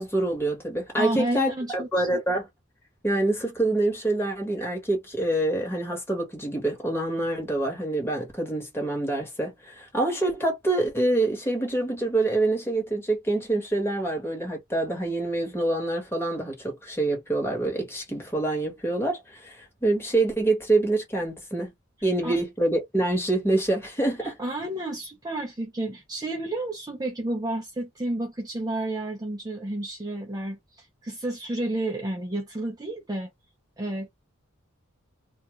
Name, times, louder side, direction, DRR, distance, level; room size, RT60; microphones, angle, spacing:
voice 1, 0.0-2.5 3.0-21.7 22.0-24.4, right 2 dB, 10° left, 1.2 m, -26 dB
voice 2, 1.0-2.1 22.2-22.4 24.2-33.3 33.8-34.1, right 1 dB, 20° right, 0.5 m, -31 dB
2.3 x 2.2 x 3.0 m
head